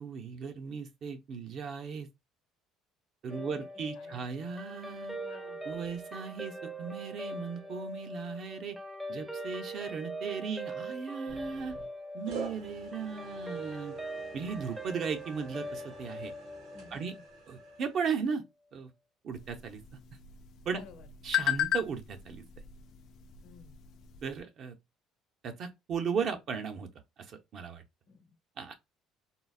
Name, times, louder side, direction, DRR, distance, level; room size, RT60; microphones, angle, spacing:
voice 1, 0.0-2.1 3.2-5.2 5.7-8.8 9.1-11.8 12.1-14.0 14.3-16.3 16.9-17.1 17.5-18.4 18.7-18.9 19.2-19.8 20.7-20.8 21.2-22.4 24.2-24.8 25.4-26.9 27.2-27.8 28.6-28.7, right 6 dB, 50° right, 0.6 m, -36 dB
voice 2, 3.3-4.3 5.2-5.6 16.7-17.2 20.7-21.1 23.4-23.8 28.1-28.4, left 5 dB, 75° left, 0.8 m, -54 dB
Guitar, 3.3-17.9, right 1 dB, 5° right, 0.5 m, -42 dB
sound 1, 11.3-11.9 12.3-18.2, right 3 dB, 80° right, 1.6 m, -47 dB
sound 2, 19.3-24.4, left 12 dB, 60° left, 0.4 m, -36 dB
3.8 x 2.0 x 2.3 m
cardioid pair, 110°, 0 cm